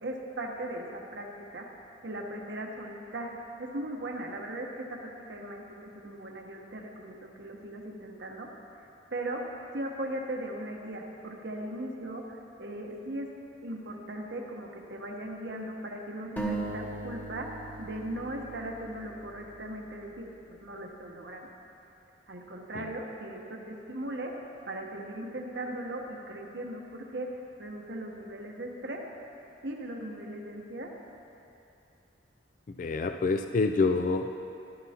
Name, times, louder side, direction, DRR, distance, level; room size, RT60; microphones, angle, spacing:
voice 1, 0.0-1.7 2.0-3.3 3.6-5.0 5.3-8.5 9.1-13.3 13.6-21.5 22.3-24.3 24.7-27.3 27.6-29.0 29.6-30.9, right 1 dB, 65° right, 1 dB, 1.0 m, -38 dB
sound 1, 16.4-20.0, right 2 dB, 10° left, 0.9 m, -38 dB
voice 2, 32.7-34.3, left 3 dB, 45° left, 6 dB, 0.3 m, -27 dB
13.5 x 12.0 x 2.9 m, 2.8 s
head